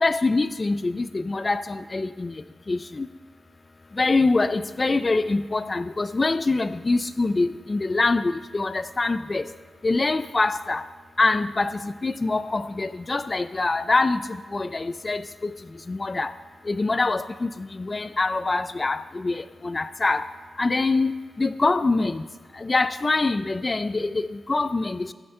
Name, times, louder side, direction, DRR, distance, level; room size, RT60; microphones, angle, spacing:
voice 1, 0.0-2.3 2.7-3.1 4.0-9.4 9.8-10.8 11.2-14.2 14.5-15.2 15.9-16.3 16.7-17.5 17.8-20.3 20.6-21.1 21.4-22.2 22.6-25.1, left 3 dB, 30° left, 13 dB, 0.3 m, -24 dB
15.5 x 7.7 x 5.5 m, 1.4 s
wide cardioid pair, 115°, 0 cm